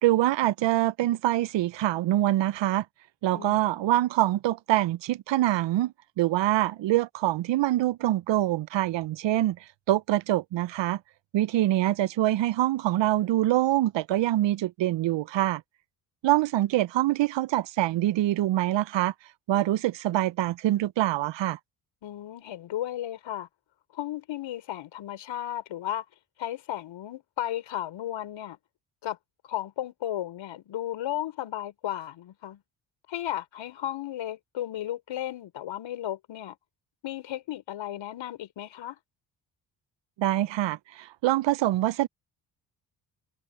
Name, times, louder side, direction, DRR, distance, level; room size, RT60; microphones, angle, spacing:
voice 1, 0.0-2.8 3.2-9.6 9.9-11.0 11.3-15.6 16.2-19.1 19.5-21.6 40.2-42.1, right 14 dB, 60° right, 1.1 m, -25 dB
voice 2, 3.3-3.8 22.0-23.5 23.9-26.1 26.4-28.6 29.0-29.2 29.4-32.6 33.1-36.6 37.0-39.0, left 12 dB, 65° left, 5.4 m, -34 dB
hypercardioid pair, 55°, 49 cm